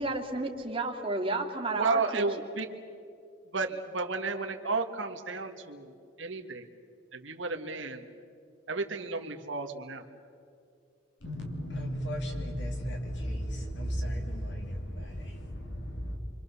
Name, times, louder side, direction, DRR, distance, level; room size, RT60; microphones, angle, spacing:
voice 1, 0.0-2.2, right 2 dB, 30° right, 2.2 m, -32 dB
voice 2, 1.8-2.7 3.5-5.9 6.2-6.6 7.1-8.1 8.7-10.0, right 3 dB, 75° right, 1.9 m, -32 dB
voice 3, 11.2-16.2, equal, 65° left, 3.1 m, -35 dB
28.0 x 24.5 x 7.0 m
head